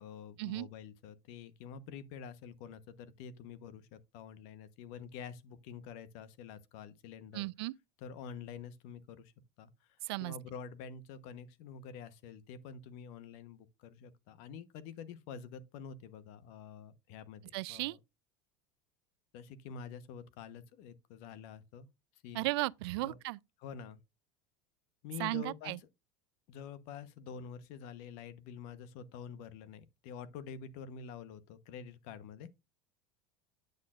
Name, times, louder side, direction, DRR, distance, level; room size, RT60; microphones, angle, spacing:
voice 1, 0.0-7.5 8.0-9.3 9.6-18.0 19.3-21.9 22.2-22.5 23.0-23.2 23.6-24.0 25.0-25.9 26.5-32.5, left 7 dB, 65° left, 1.1 m, -47 dB
voice 2, 7.3-7.7 10.1-10.3 17.5-18.0 22.3-23.4 25.2-25.8, right 22 dB, 80° right, 0.4 m, -35 dB
9.6 x 6.5 x 2.5 m
supercardioid pair, 110°, 13 cm